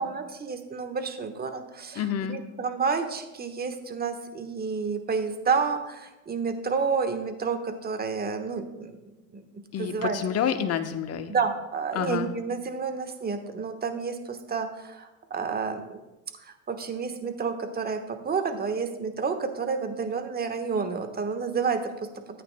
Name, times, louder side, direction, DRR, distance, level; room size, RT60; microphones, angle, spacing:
voice 1, 0.0-9.0 9.3-9.4 9.8-10.2 11.3-16.0 16.4-22.1, right 5 dB, 25° right, 7 dB, 1.3 m, -30 dB
voice 2, 1.9-2.4 9.7-11.3 11.9-12.3, left 8 dB, 40° left, 8 dB, 1.0 m, -28 dB
13.5 x 8.8 x 2.2 m, 1.0 s
hypercardioid pair, 85°, 40 cm